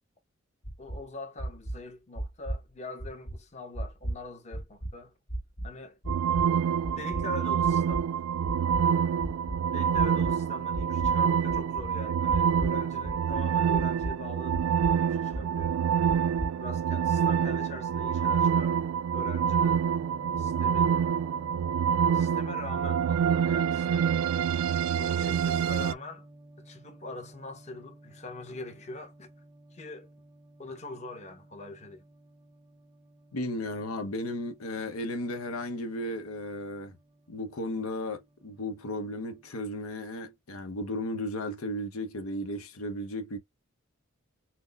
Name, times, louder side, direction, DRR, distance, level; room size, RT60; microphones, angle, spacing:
sound 1, 0.6-1.0 1.4-1.8 2.2-2.6 3.0-3.4 3.7-4.2 4.5-4.9 5.3-5.7 6.0-6.5 6.8-7.2 7.6-8.0 8.4-8.8 9.2-9.6 10.0-10.3 10.7-11.1 11.5-11.9 12.3-12.8 13.0-13.5 13.7-14.1 14.5-15.0 15.3-15.7 16.1-16.5, right 1 dB, 65° left, 1.7 m, -35 dB
voice 1, 0.8-5.1 5.6-6.0 6.9-8.1 9.7-14.6 15.0-15.8 16.6-19.9 20.4-21.0 22.1-24.2 25.0-26.2 26.6-29.3 29.7-30.1 30.6-32.0, left 2 dB, 35° left, 0.9 m, -43 dB
sound 2, 6.1-25.9, right 7 dB, 85° right, 0.3 m, -26 dB
sound 3, 20.0-39.5, right 1 dB, 15° right, 0.6 m, -53 dB
voice 2, 33.3-37.0 37.3-43.4, left 1 dB, 85° left, 0.8 m, -35 dB
5.9 x 2.1 x 2.3 m
head